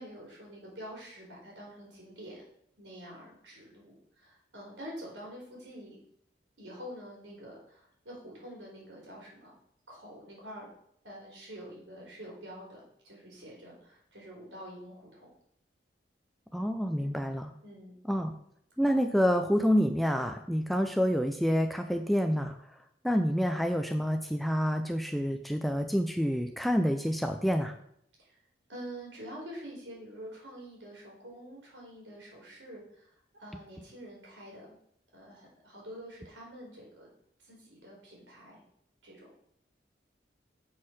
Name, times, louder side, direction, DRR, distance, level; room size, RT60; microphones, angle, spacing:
voice 1, 0.0-2.4 2.8-6.0 6.6-9.5 9.9-10.7 11.0-15.3 16.9-17.3 17.6-18.0 28.2-28.4 28.7-34.8 35.1-37.1 37.4-38.6 39.0-39.5, equal, 75° right, -2 dB, 3.7 m, -47 dB
voice 2, 16.5-17.5 18.1-18.3 18.8-22.6 23.0-27.7, equal, ahead, 6 dB, 0.4 m, -28 dB
7.4 x 4.4 x 6.3 m, 0.71 s
head